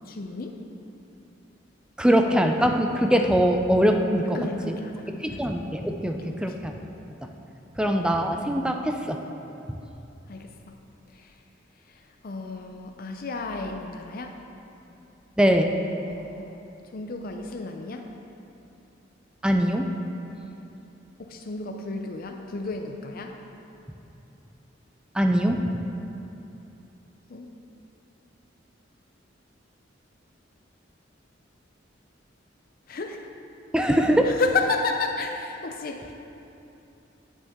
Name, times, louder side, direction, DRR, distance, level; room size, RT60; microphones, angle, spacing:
voice 1, 0.1-0.6 2.3-2.5 4.3-5.4 6.2-6.3 10.3-10.5 12.2-14.4 16.1-16.6 16.9-18.1 21.2-23.4 27.3-27.5 32.9-33.2 34.0-36.1, left 3 dB, 50° left, 4 dB, 0.5 m, -32 dB
voice 2, 2.0-4.4 4.7-4.8 5.2-6.7 7.8-9.2 15.4-15.8 19.4-19.9 25.1-25.6 33.7-34.3, equal, 5° right, 4 dB, 0.4 m, -22 dB
9.4 x 8.9 x 3.6 m, 2.9 s
head